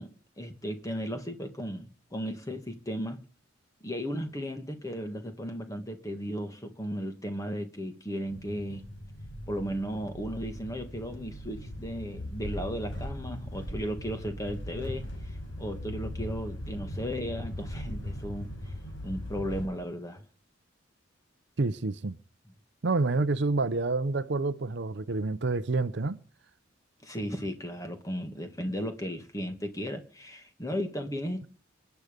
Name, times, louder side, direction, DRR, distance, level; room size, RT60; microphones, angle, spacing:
voice 1, 0.0-3.2 3.8-8.8 9.5-15.1 15.6-18.5 19.0-20.2 27.0-31.5, equal, 15° left, 1.7 m, -35 dB
sound 1, 8.3-19.7, left 1 dB, 65° left, 4.9 m, -39 dB
voice 2, 21.6-22.2 22.8-26.2, right 3 dB, 60° right, 0.7 m, -28 dB
28.5 x 9.5 x 5.2 m
head